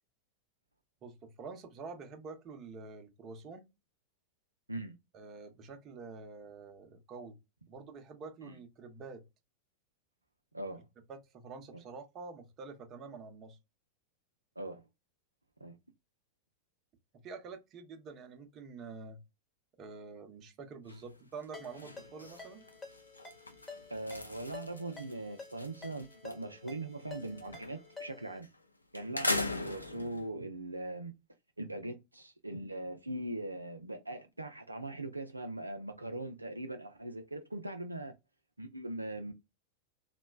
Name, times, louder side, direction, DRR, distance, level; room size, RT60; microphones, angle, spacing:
voice 1, 1.0-3.7 5.1-7.4 7.7-9.2 11.1-13.6 17.2-19.2 19.8-22.6, right 4 dB, 30° right, 0.8 m, -47 dB
voice 2, 10.5-10.9 14.6-14.8 15.6-15.8 23.9-28.5 28.9-31.1 31.6-38.1 38.6-39.3, right 1 dB, 85° right, 0.4 m, -41 dB
sound 1, 20.9-21.1 21.4-26.4 26.8-27.9 28.4-28.6 29.0-30.3, left 2 dB, 85° left, 0.4 m, -40 dB
Ringtone, 21.5-28.4, left 4 dB, 15° left, 1.0 m, -51 dB
3.0 x 2.1 x 2.2 m
figure-of-eight pair, 90°, 0 cm